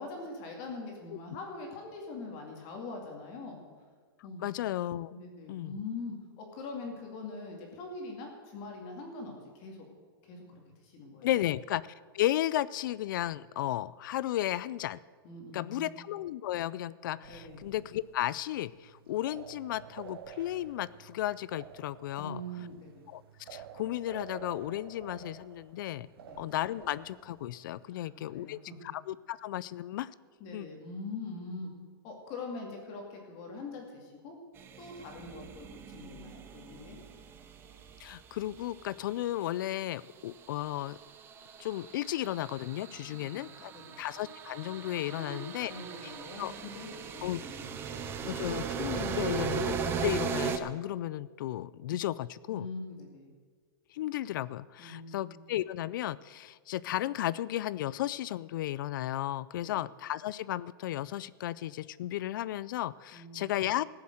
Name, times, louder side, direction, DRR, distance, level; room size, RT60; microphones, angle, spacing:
voice 1, 0.0-3.6 4.2-4.5 5.1-9.8 10.2-11.4 15.2-15.9 17.3-17.6 22.2-23.0 26.2-26.4 27.9-28.8 30.4-31.7 32.0-34.4 34.8-37.0 43.2-44.0 45.1-48.4 52.5-53.3 54.8-55.2 59.6-59.9 63.1-63.5, left 3 dB, 35° left, 1 dB, 2.3 m, -43 dB
voice 2, 4.4-5.1 5.5-5.7 11.2-11.9 12.1-15.0 15.5-22.4 23.1-26.1 26.4-28.6 28.9-30.1 30.5-30.7 38.0-41.0 41.6-43.7 44.0-45.7 46.0-46.1 46.4-46.5 47.2-47.4 48.3-52.7 53.9-63.8, left 13 dB, 55° left, 19 dB, 0.4 m, -34 dB
sound 1, 17.2-27.9, right 9 dB, 75° right, 1.0 m, -51 dB
sound 2, 34.6-38.9 40.4-50.6, right 6 dB, 20° right, 0.7 m, -38 dB
15.0 x 7.2 x 7.8 m, 1.5 s
supercardioid pair, 160°, 13 cm